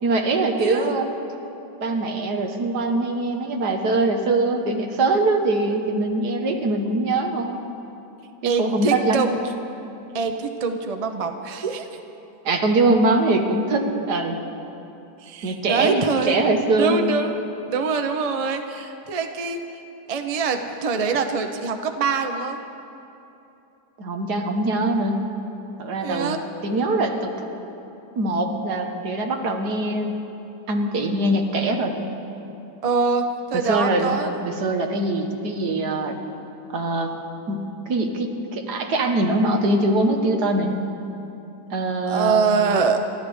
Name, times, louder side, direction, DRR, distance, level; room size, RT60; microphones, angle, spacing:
voice 1, 0.0-1.0 1.8-7.6 8.4-9.2 12.5-14.4 15.4-17.0 24.0-25.2 25.8-26.4 26.6-27.3 28.2-30.2 30.7-32.0 33.5-34.2 34.4-36.2 36.7-37.1 37.5-40.7 41.7-42.5, right 2 dB, 75° right, 3 dB, 1.8 m, -22 dB
voice 2, 0.6-0.9 8.4-9.4 10.1-11.9 15.2-16.4 16.8-19.6 20.1-22.6 26.0-26.4 32.8-33.2 33.5-34.3 42.1-43.0, right 5 dB, 35° right, 6 dB, 0.6 m, -24 dB
29.5 x 13.0 x 3.5 m, 2.8 s
omnidirectional pair, 1.8 m